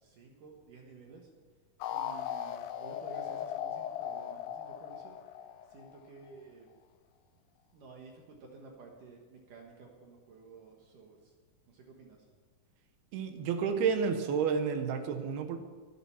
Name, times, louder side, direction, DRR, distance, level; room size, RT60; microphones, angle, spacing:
voice 1, 0.0-1.3 1.9-5.2 5.7-6.7 7.7-11.3 11.7-12.2, right 4 dB, 65° right, 0 dB, 2.9 m, -53 dB
sound 1, 1.8-6.3, left 10 dB, 80° left, 2.3 m, -38 dB
voice 2, 13.1-15.6, right 6 dB, 85° right, 7 dB, 3.1 m, -30 dB
23.0 x 8.0 x 5.8 m, 1.5 s
omnidirectional pair, 4.4 m